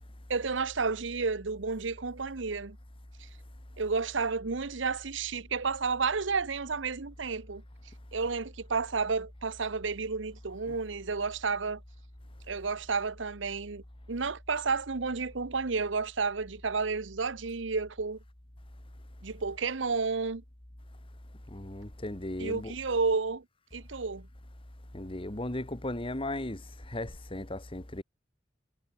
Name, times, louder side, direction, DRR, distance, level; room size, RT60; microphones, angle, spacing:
voice 1, 0.3-2.8 3.8-7.6 8.1-11.8 12.5-13.8 14.1-18.2 19.2-20.4 22.4-23.4 23.7-24.3, right 4 dB, 80° right, 1.0 m, -31 dB
voice 2, 21.5-22.7 24.9-28.0, left 1 dB, 30° left, 1.8 m, -36 dB
head